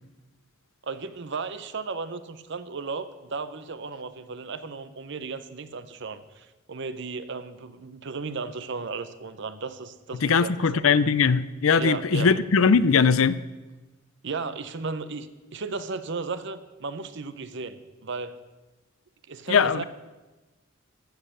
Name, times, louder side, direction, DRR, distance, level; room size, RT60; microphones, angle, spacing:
voice 1, 0.8-10.8 11.7-12.3 14.2-18.4 19.3-19.8, right 4 dB, 60° right, 0.7 m, -35 dB
voice 2, 10.2-13.4 19.5-19.8, left 5 dB, 75° left, 0.5 m, -20 dB
15.0 x 6.6 x 6.8 m
head